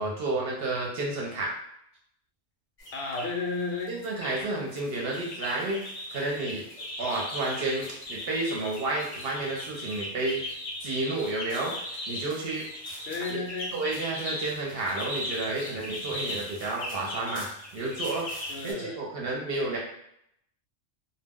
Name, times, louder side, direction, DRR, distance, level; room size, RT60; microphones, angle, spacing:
voice 1, 0.0-1.5 3.9-5.8 6.1-6.6 7.0-10.4 10.8-11.7 12.1-12.7 13.3-13.4 13.7-17.5 17.7-18.3 18.6-19.8, right 2 dB, 60° right, -2 dB, 0.8 m, -31 dB
sound 1, 2.8-3.3 3.8-4.4 4.7-18.7, left 1 dB, 35° left, 0.6 m, -38 dB
voice 2, 2.9-3.9 13.1-13.8 18.5-19.0, left 4 dB, 65° left, -1 dB, 0.8 m, -33 dB
2.2 x 2.0 x 3.5 m, 0.74 s
omnidirectional pair, 1.2 m